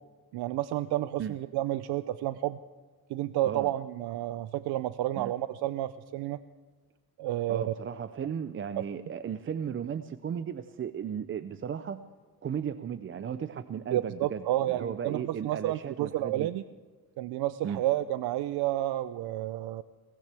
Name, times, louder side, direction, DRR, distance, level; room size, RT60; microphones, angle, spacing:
voice 1, 0.3-2.6 3.1-6.4 7.2-7.7 13.9-16.6 17.2-19.8, right 14 dB, 80° right, 13 dB, 0.6 m, -30 dB
voice 2, 7.5-12.0 12.4-16.5 17.6-17.8, right 8 dB, 35° right, 11 dB, 0.5 m, -35 dB
22.0 x 18.5 x 3.4 m, 1.4 s
cardioid pair, 130°, 38 cm